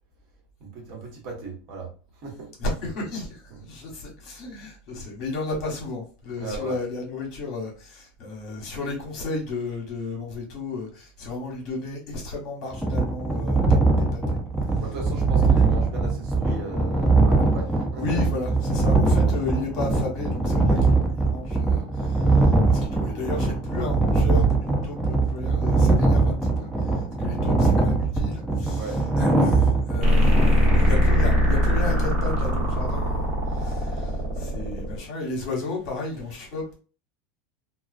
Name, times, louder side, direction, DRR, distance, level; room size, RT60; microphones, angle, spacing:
voice 1, 0.6-1.9 2.2-2.5 6.4-6.8 14.8-18.2 28.7-29.0, right 4 dB, 50° right, 0 dB, 1.1 m, -36 dB
voice 2, 2.6-3.4 3.7-14.4 18.0-36.7, left 3 dB, 50° left, -1 dB, 1.1 m, -33 dB
sound 1, 12.7-30.9, right 3 dB, ahead, 0.5 m, -22 dB
sound 2, 30.0-35.0, equal, 30° right, 1.2 m, -21 dB
2.3 x 2.2 x 2.4 m, 0.37 s
supercardioid pair, 135°, 0 cm